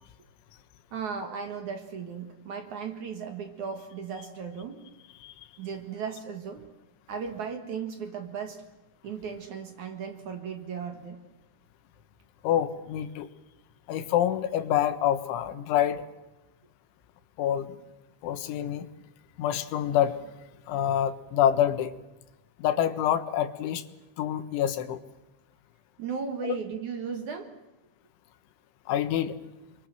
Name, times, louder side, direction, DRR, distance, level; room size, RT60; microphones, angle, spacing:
voice 1, 0.9-4.8 5.6-6.6 7.1-8.6 9.0-11.2 26.0-27.5, right 6 dB, 55° right, 6 dB, 2.5 m, -36 dB
voice 2, 12.4-13.3 13.9-16.0 17.4-17.8 18.2-18.9 19.4-20.2 20.7-21.9 22.6-23.8 24.2-25.0 26.4-26.6 28.9-29.3, left 10 dB, 80° left, 10 dB, 3.8 m, -26 dB
29.5 x 24.0 x 7.7 m, 1.0 s
omnidirectional pair, 5.4 m